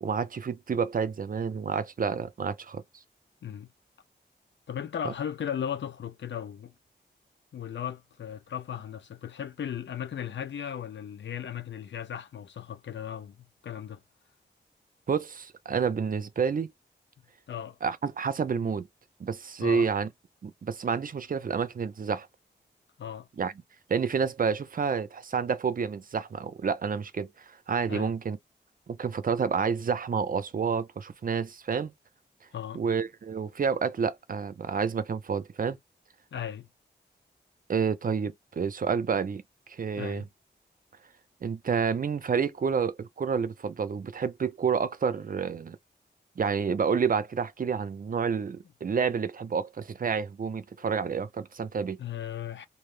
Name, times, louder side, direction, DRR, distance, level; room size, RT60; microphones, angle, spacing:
voice 1, 0.0-2.8 5.0-5.1 15.1-16.7 17.8-18.9 19.2-20.1 20.4-22.3 23.4-23.5 23.9-28.4 28.9-31.9 32.7-35.8 37.7-39.4 39.7-40.2 41.4-45.8 46.4-52.0, right 6 dB, 50° right, 0.5 m, -29 dB
voice 2, 4.7-6.7 7.5-14.0 17.5-17.8 19.6-19.9 23.0-23.3 27.9-28.1 32.5-32.8 36.3-36.7 40.0-40.3 52.0-52.7, left 9 dB, 85° left, 0.6 m, -36 dB
2.6 x 2.1 x 3.1 m
wide cardioid pair, 75°, 18 cm